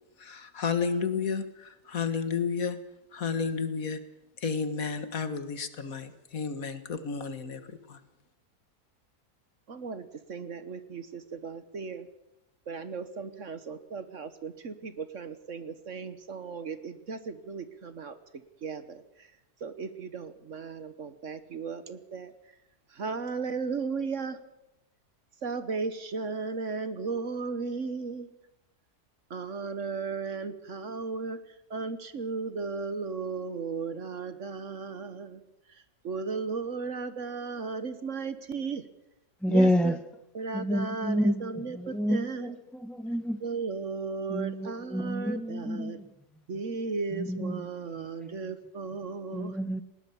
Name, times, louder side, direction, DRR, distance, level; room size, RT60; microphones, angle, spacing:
voice 1, 0.2-2.8 3.1-4.0 4.4-7.6 7.9-8.0, left 5 dB, 60° left, 1.9 m, -31 dB
voice 2, 9.7-12.1 12.7-18.1 18.6-19.0 19.6-22.3 23.0-24.4 25.4-28.3 29.3-31.4 31.7-35.4 36.0-38.8 39.5-39.9 40.3-42.5 43.4-46.0 46.5-49.5, right 4 dB, 50° right, 1.4 m, -35 dB
voice 3, 39.4-40.0 40.5-43.4 44.3-46.0 47.1-47.7 48.2-48.3 49.3-49.8, equal, ahead, 0.6 m, -29 dB
20.0 x 18.0 x 7.1 m
omnidirectional pair, 1.7 m